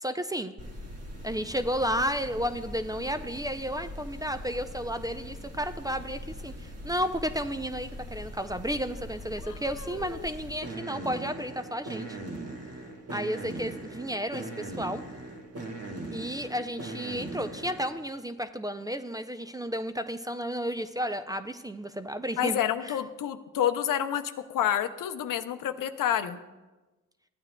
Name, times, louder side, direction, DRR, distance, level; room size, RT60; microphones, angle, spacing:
voice 1, 0.0-0.5 1.2-12.2 13.1-15.0 16.1-22.6 22.8-23.0, equal, 10° right, 9 dB, 0.3 m, -32 dB
sound 1, 0.6-18.0, right 1 dB, 50° right, 1.4 m, -41 dB
voice 2, 9.4-10.3 22.4-26.4, left 10 dB, 80° left, 10 dB, 0.6 m, -29 dB
14.5 x 8.8 x 2.2 m, 1.2 s
cardioid pair, 90°, 32 cm